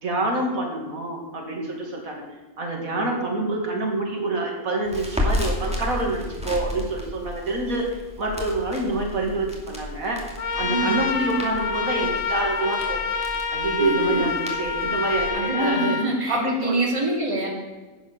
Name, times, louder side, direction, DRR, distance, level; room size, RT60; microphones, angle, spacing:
voice 1, 0.0-2.2 2.6-7.9 8.2-10.2 10.6-13.1 13.5-16.0 16.3-16.8, right 2 dB, 85° right, 0 dB, 2.6 m, -27 dB
Crackle, 4.9-15.3, left 1 dB, 5° right, 2.3 m, -33 dB
Trumpet, 10.4-16.1, left 5 dB, 75° left, 1.4 m, -27 dB
voice 2, 10.7-11.0 13.8-14.3 15.3-17.5, right 1 dB, 20° right, -2 dB, 2.7 m, -25 dB
11.0 x 8.4 x 6.5 m, 1.2 s
omnidirectional pair, 1.4 m